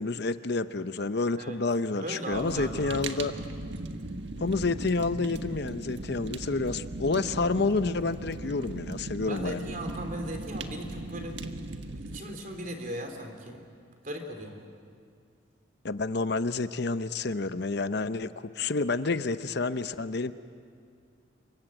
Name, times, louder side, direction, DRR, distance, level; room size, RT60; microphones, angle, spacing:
voice 1, 0.0-3.3 4.4-9.6 15.8-18.3 18.6-20.3, left 3 dB, 55° left, 12 dB, 0.7 m, -29 dB
voice 2, 2.0-3.4 7.4-7.5 9.3-11.4 12.0-13.6 14.0-14.6, right 1 dB, 45° right, 5 dB, 3.5 m, -38 dB
Fire, 2.3-12.2, right 2 dB, 65° right, 1.5 m, -38 dB
28.0 x 24.0 x 9.0 m, 2.3 s
head